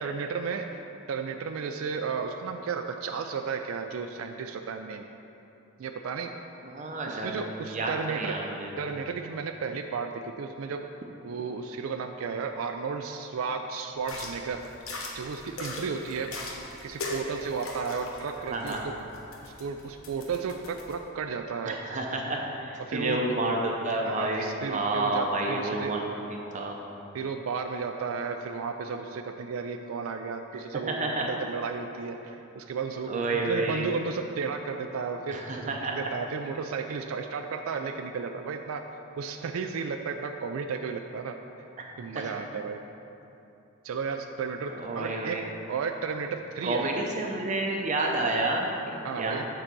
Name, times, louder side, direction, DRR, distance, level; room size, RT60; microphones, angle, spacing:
voice 1, 0.0-0.8 1.1-5.1 5.8-6.3 7.1-8.4 8.8-10.9 11.2-14.6 15.1-16.5 16.8-18.9 19.4-21.8 22.8-23.2 24.0-25.9 27.1-38.8 39.2-41.4 42.0-42.8 43.8-45.4 45.7-47.1 49.0-49.4, right 5 dB, 80° right, 5 dB, 0.4 m, -33 dB
voice 2, 6.6-7.4 7.7-8.7 18.5-18.8 21.6-26.0 26.3-26.8 30.9-31.3 33.1-33.9 35.3-36.0 41.8-41.9 42.1-42.3 44.8-45.4 46.6-49.5, right 2 dB, 35° right, 0 dB, 0.6 m, -30 dB
sound 1, 14.0-20.9, left 2 dB, 90° left, 1.1 m, -40 dB
8.0 x 3.9 x 6.0 m, 2.9 s
head